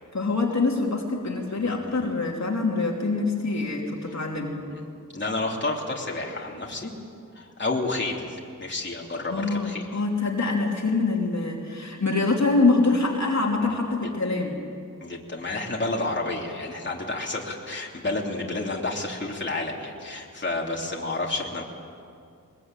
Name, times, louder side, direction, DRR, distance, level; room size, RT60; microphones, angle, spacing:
voice 1, 0.1-4.6 9.3-14.5, left 3 dB, 55° left, -1 dB, 3.1 m, -25 dB
voice 2, 1.6-2.1 4.7-4.8 5.1-6.9 7.3-10.0 13.6-13.7 15.0-21.6, left 2 dB, 35° left, -2 dB, 3.2 m, -30 dB
22.5 x 21.5 x 9.1 m, 2.4 s
wide cardioid pair, 95°, 34 cm